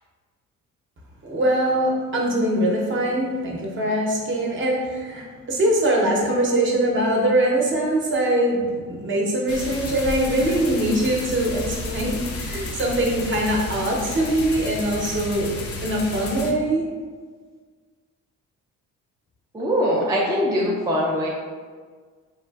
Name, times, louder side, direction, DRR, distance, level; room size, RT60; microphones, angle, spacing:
voice 1, 1.2-15.6 15.8-16.8, right 1 dB, 40° right, -2 dB, 0.8 m, -22 dB
sound 1, 9.5-16.5, left 2 dB, 50° left, 0.5 m, -32 dB
voice 2, 19.5-21.3, equal, 10° right, -4 dB, 0.4 m, -22 dB
3.6 x 2.4 x 2.3 m, 1.6 s
cardioid pair, 90°, 30 cm